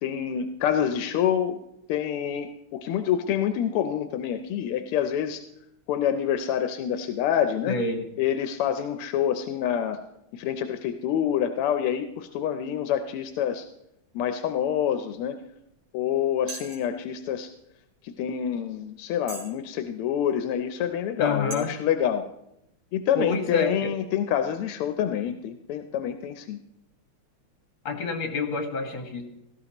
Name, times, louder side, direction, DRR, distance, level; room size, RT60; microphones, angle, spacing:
voice 1, 0.0-1.6 1.9-5.4 5.9-7.8 8.2-10.0 10.3-13.6 14.1-15.4 15.9-17.5 18.0-22.2 22.9-26.6, left 9 dB, 90° left, 8 dB, 1.6 m, -27 dB
voice 2, 7.7-8.0 21.2-21.7 23.2-23.9 27.9-29.2, left 3 dB, 65° left, 4 dB, 2.4 m, -28 dB
sound 1, 16.5-16.9 17.7-17.8 18.3-18.4 19.2-19.6 20.2-20.3 21.0-21.1 21.5-21.6, right 4 dB, 90° right, 3.5 m, -38 dB
17.0 x 14.0 x 2.9 m, 0.83 s
omnidirectional pair, 2.4 m